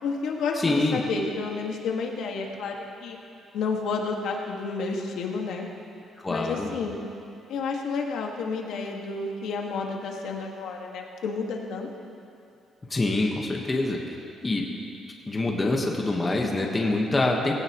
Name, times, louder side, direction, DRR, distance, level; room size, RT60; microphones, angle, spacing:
voice 1, 0.0-3.2 3.5-5.7 6.3-7.0 7.5-11.9, left 4 dB, 75° left, 0 dB, 1.8 m, -30 dB
voice 2, 0.6-1.0 6.2-6.7 12.9-14.0 14.4-14.7 15.3-17.5, left 2 dB, 15° left, 0 dB, 1.3 m, -25 dB
19.5 x 17.0 x 3.1 m, 2.6 s
cardioid pair, 170°, 0 cm